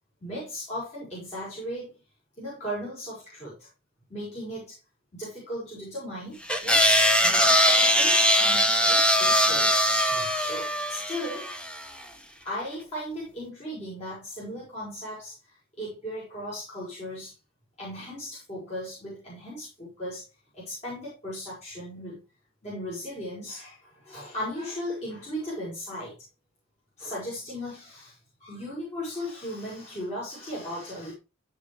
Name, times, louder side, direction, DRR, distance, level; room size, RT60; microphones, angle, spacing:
voice 1, 0.2-1.9 2.4-3.7 4.1-4.8 5.1-9.7 10.1-11.5 12.4-17.3 17.8-20.2 20.5-22.2 22.6-26.1 27.0-31.1, equal, 35° left, -8 dB, 6.5 m, -37 dB
sound 1, 6.5-11.8, equal, 5° left, 1.1 m, -21 dB
16.0 x 5.5 x 3.4 m, 0.30 s
head